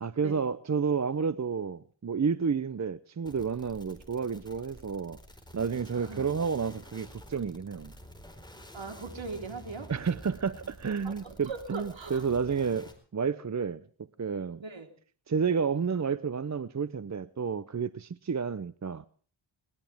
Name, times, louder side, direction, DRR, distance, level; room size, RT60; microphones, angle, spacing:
voice 1, 0.0-5.2 5.5-7.9 9.9-13.8 14.2-14.6 15.3-19.0, right 6 dB, 35° right, 0.7 m, -30 dB
sound 1, 3.2-12.9, equal, 10° left, 4.4 m, -50 dB
voice 2, 5.9-6.3 8.7-9.9 11.0-12.2 14.6-14.9, right 4 dB, 65° right, 3.8 m, -40 dB
21.0 x 20.0 x 3.5 m
wide cardioid pair, 110°, 49 cm